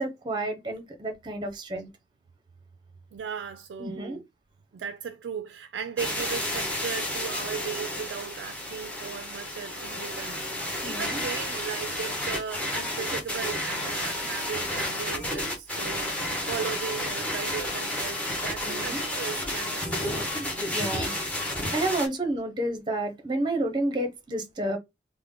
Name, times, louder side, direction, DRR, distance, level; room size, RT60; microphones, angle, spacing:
voice 1, 0.0-1.9 3.8-4.2 10.8-11.2 18.6-19.0 20.7-21.2 21.7-24.8, right 1 dB, 25° right, 0.7 m, -30 dB
voice 2, 3.1-4.3 4.7-16.1 16.5-20.2, right 7 dB, 85° right, 0.3 m, -37 dB
sound 1, 6.0-22.1, left 1 dB, 10° left, 0.9 m, -31 dB
3.3 x 2.1 x 3.6 m
head